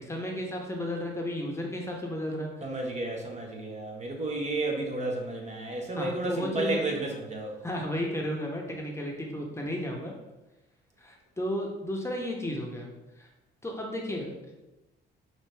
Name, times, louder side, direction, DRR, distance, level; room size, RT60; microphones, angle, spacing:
voice 1, 0.0-2.7 5.9-6.8 7.6-10.1 11.0-12.9 13.2-13.3 13.6-14.5, left 1 dB, 15° left, -1 dB, 0.8 m, -33 dB
voice 2, 2.6-7.5, right 2 dB, 35° right, 1 dB, 0.9 m, -32 dB
5.6 x 2.7 x 3.3 m, 1.0 s
cardioid pair, 90°, 20 cm